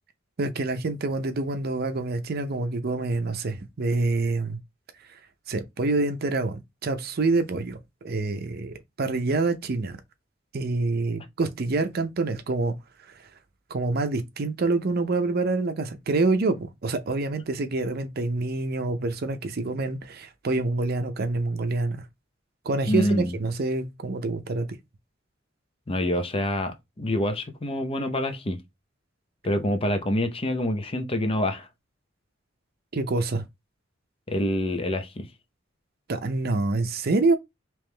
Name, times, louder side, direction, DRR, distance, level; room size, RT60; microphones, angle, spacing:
voice 1, 0.4-4.6 5.5-7.8 8.0-10.0 10.5-12.7 13.7-22.1 22.7-24.7 32.9-33.4 36.1-37.4, right 3 dB, 55° right, 0.6 m, -26 dB
voice 2, 22.9-23.4 25.9-28.6 29.4-31.7 34.3-35.3, left 1 dB, 30° left, 0.6 m, -26 dB
3.4 x 3.0 x 3.3 m
head